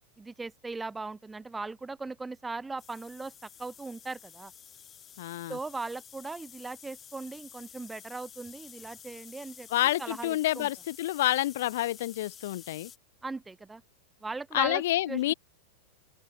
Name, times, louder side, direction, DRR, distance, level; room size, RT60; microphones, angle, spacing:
voice 1, 0.2-3.3 3.6-4.5 5.5-9.7 10.0-10.7 13.2-13.8 14.2-15.2, right 3 dB, 10° right, 0.4 m, -38 dB
sound 1, 2.8-13.0, left 8 dB, 25° left, 2.7 m, -51 dB
voice 2, 5.2-5.6 9.7-12.9 14.5-15.3, left 15 dB, 55° left, 0.5 m, -28 dB
open air
figure-of-eight pair, 90°, 0 cm